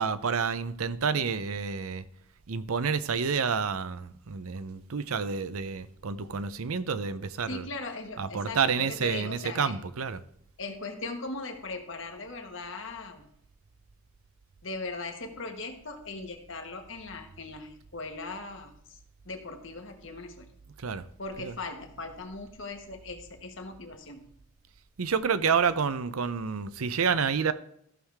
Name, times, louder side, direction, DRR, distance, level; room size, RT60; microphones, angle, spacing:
voice 1, 0.0-2.0 2.5-7.7 8.2-10.2 20.8-21.0 21.4-21.6 25.0-27.5, right 6 dB, 80° right, 0.6 m, -29 dB
voice 2, 7.5-9.8 10.6-13.3 14.6-19.0 19.2-20.5 21.2-24.3, left 3 dB, 60° left, 1.5 m, -39 dB
14.5 x 6.5 x 3.5 m
head